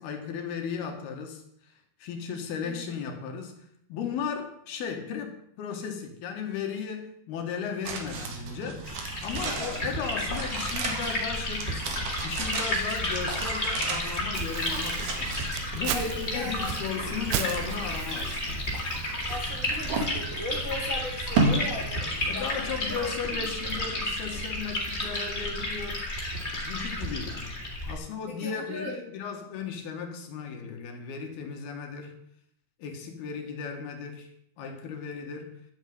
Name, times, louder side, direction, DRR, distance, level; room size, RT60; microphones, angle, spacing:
voice 1, 0.0-1.7 2.0-8.8 9.2-15.5 15.7-18.7 22.3-26.1 26.6-27.6 27.9-32.2 32.8-34.3 34.6-35.6, left 6 dB, 70° left, 3.5 m, -36 dB
voice 2, 2.6-2.9 9.5-9.7 15.9-16.7 19.3-23.0 23.3-23.5 24.2-24.3 28.4-29.0, equal, 20° right, 2.7 m, -38 dB
sound 1, 7.8-23.0 23.3-23.4, right 3 dB, 55° right, 3.0 m, -34 dB
Liquid, 8.8-27.9, left 1 dB, 15° left, 3.4 m, -32 dB
Crumpling crinkling, 14.3-19.9, right 10 dB, 75° right, 2.9 m, -37 dB
12.0 x 8.2 x 9.3 m
omnidirectional pair, 4.8 m